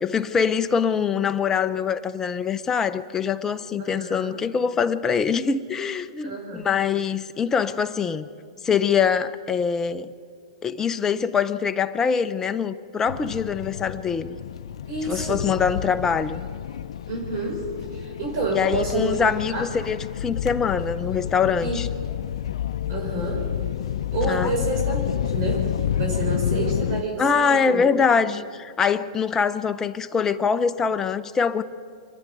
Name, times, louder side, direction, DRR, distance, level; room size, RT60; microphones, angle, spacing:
voice 1, 0.0-8.3 8.6-10.1 10.6-14.4 15.1-16.4 18.5-21.9 24.2-24.5 27.2-31.6, left 6 dB, 15° left, 0.7 m, -24 dB
voice 2, 3.8-4.4 6.2-6.7 14.9-15.5 17.1-19.2 19.5-19.7 21.6-21.8 22.9-23.5 24.1-27.8, right 2 dB, 45° right, 5.6 m, -29 dB
sound 1, 13.1-27.0, left 10 dB, 70° left, 0.5 m, -29 dB
27.0 x 10.5 x 9.4 m
hypercardioid pair, 135°, 3 cm